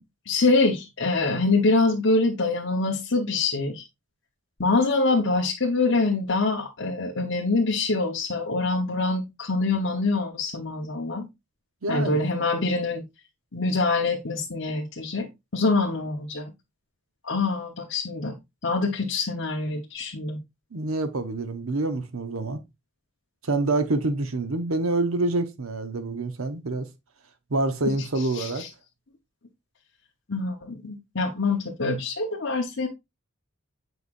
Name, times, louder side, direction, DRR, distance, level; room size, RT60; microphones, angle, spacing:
voice 1, 0.3-3.8 4.6-11.2 11.9-13.0 13.5-15.3 15.5-16.5 17.2-18.4 18.6-20.4 28.0-28.7 30.3-32.9, left 3 dB, 60° left, 1.1 m, -25 dB
voice 2, 11.8-12.2 20.7-22.6 23.4-26.9 27.5-28.6, right 2 dB, 85° right, 0.9 m, -26 dB
8.0 x 4.9 x 2.5 m
head